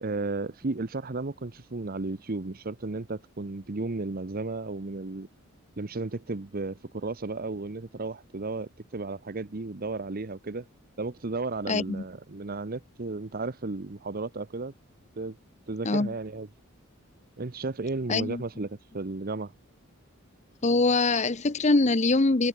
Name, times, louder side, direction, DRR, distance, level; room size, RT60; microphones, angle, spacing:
voice 1, 0.0-5.3 5.8-10.7 11.0-14.7 15.2-15.4 15.7-16.5 17.4-19.5, right 3 dB, 45° right, 0.8 m, -34 dB
voice 2, 11.7-12.0 15.8-16.1 18.1-18.4 20.6-22.5, left 3 dB, 30° left, 0.8 m, -23 dB
head